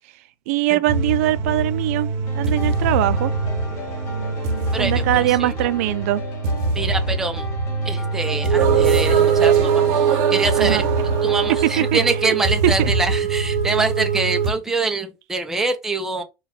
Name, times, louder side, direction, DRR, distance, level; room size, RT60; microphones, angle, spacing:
voice 1, 0.5-2.1 2.3-3.3 4.8-6.2 10.6-10.8 11.8-12.0 12.6-12.9, right 15 dB, 85° right, 0.4 m, -21 dB
sound 1, 0.9-14.5, right 5 dB, 45° right, 0.8 m, -21 dB
sound 2, 2.3-11.9, left 2 dB, 35° left, 0.9 m, -37 dB
voice 2, 4.7-5.5 6.7-7.5 7.8-10.8 11.2-16.2, right 3 dB, 5° right, 0.4 m, -25 dB
4.2 x 2.3 x 3.9 m
cardioid pair, 180°, 8 cm